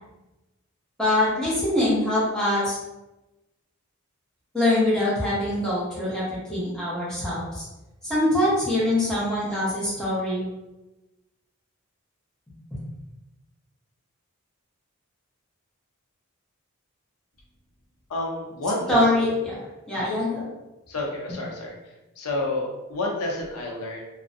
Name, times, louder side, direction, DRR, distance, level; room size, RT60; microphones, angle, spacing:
voice 1, 1.0-2.8 4.5-7.7 8.0-10.4 18.9-19.5 19.9-20.4, left 1 dB, 5° left, -9 dB, 0.7 m, -23 dB
voice 2, 18.1-19.0 19.9-20.1 20.9-21.7 22.2-24.0, left 2 dB, 90° left, -1 dB, 0.6 m, -29 dB
2.5 x 2.0 x 2.5 m, 1.0 s
head